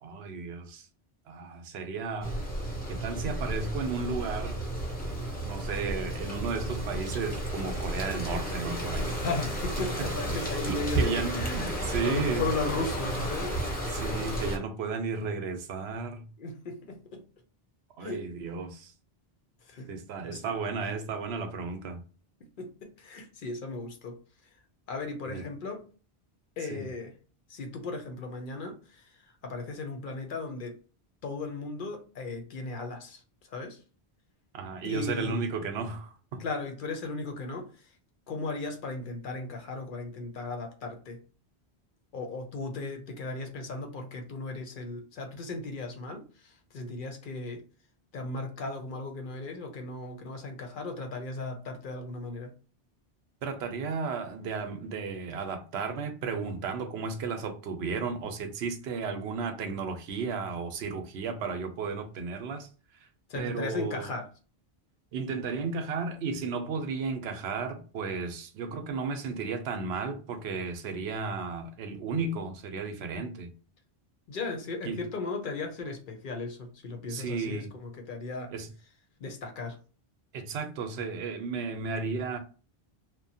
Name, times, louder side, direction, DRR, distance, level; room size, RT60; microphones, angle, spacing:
voice 1, 0.0-0.9 1.3-2.4 2.9-4.6 5.4-9.2 10.0-10.1 10.6-12.5 13.9-16.3 18.0-18.9 19.9-22.0 25.3-25.4 26.7-26.9 34.5-36.4 53.4-62.7 63.3-64.1 65.1-73.5 74.9-75.0 77.1-77.7 78.5-78.7 80.3-82.4, right 4 dB, 85° right, 0.8 m, -34 dB
sound 1, 2.2-14.6, right 1 dB, 10° left, 0.8 m, -32 dB
voice 2, 9.2-13.6 16.4-17.2 18.0-18.3 19.7-19.9 20.2-20.5 22.6-24.2 24.9-25.9 26.6-27.1 27.5-29.2 29.4-30.8 31.2-33.2 33.5-33.8 34.8-35.4 36.4-37.7 38.3-41.2 42.1-47.6 48.1-52.5 63.3-64.3 74.3-78.5 79.2-79.8, left 3 dB, 60° left, 0.7 m, -36 dB
2.9 x 2.0 x 2.7 m
omnidirectional pair, 1.1 m